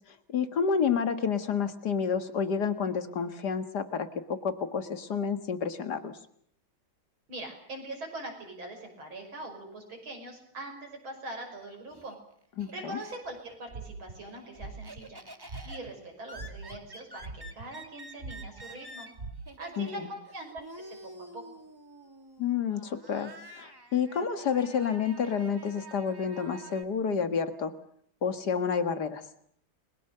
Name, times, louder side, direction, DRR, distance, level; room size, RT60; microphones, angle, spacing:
voice 1, 0.3-6.2 12.6-13.0 19.8-20.1 22.4-27.7 28.2-29.2, left 6 dB, 55° left, 9 dB, 2.1 m, -29 dB
voice 2, 7.3-12.2 12.7-15.2 15.6-19.1 19.6-20.5 20.8-21.6, right 1 dB, 80° right, 3 dB, 6.6 m, -42 dB
Laughter, 11.4-13.6 13.9-26.8, right 1 dB, 10° right, 1.8 m, -49 dB
sound 1, 13.7-14.2 14.6-15.0 15.5-15.9 16.3-16.8 17.2-17.9 18.2-18.6 19.2-19.3, right 3 dB, 30° right, 3.3 m, -41 dB
29.5 x 22.0 x 6.8 m, 0.66 s
omnidirectional pair, 2.2 m